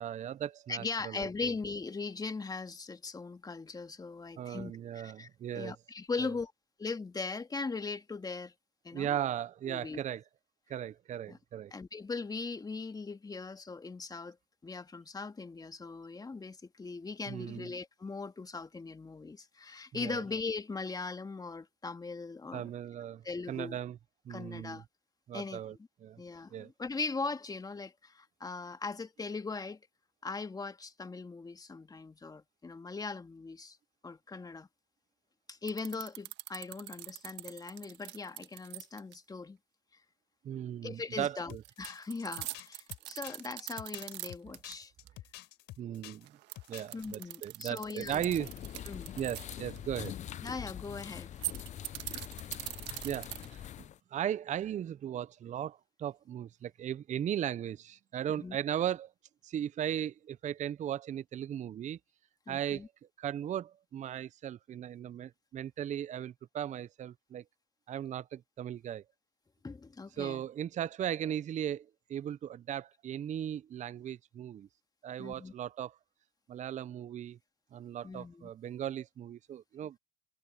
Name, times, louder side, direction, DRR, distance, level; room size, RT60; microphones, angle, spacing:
voice 1, 0.0-1.5 4.4-5.7 8.9-10.2 10.7-11.7 17.3-17.7 19.9-20.2 22.5-23.2 23.5-24.0 24.3-24.8 25.3-25.7 26.0-26.2 26.5-26.7 40.4-41.6 45.8-46.3 46.7-48.5 49.2-50.2 53.0-53.6 54.1-59.1 59.4-62.0 62.5-62.9 63.2-67.4 67.9-69.0 70.2-74.7 75.0-76.0 76.5-77.4 77.7-80.0, right 10 dB, 35° right, 0.7 m, -37 dB
voice 2, 0.7-5.3 5.5-6.5 6.8-8.5 8.8-9.2 9.7-10.0 11.3-11.4 11.7-14.4 14.6-22.6 23.2-23.8 24.3-24.8 25.3-25.8 26.2-29.8 30.2-33.8 34.0-34.7 35.5-39.6 40.8-41.5 41.8-44.9 46.9-48.3 48.9-49.1 50.4-51.3 58.3-58.6 62.5-62.9 69.6-70.5 75.2-75.5 78.0-78.5, left 4 dB, 20° left, 2.2 m, -40 dB
sound 1, 35.7-39.1 41.6-44.7 45.1-45.2 46.3-50.1 51.3-53.7, right 18 dB, 60° right, 1.6 m, -42 dB
sound 2, 41.5-46.3 46.5-47.0, left 16 dB, 60° left, 3.9 m, -49 dB
sound 3, 48.0-54.0, left 11 dB, 35° left, 0.6 m, -44 dB
hypercardioid pair, 75°, 20 cm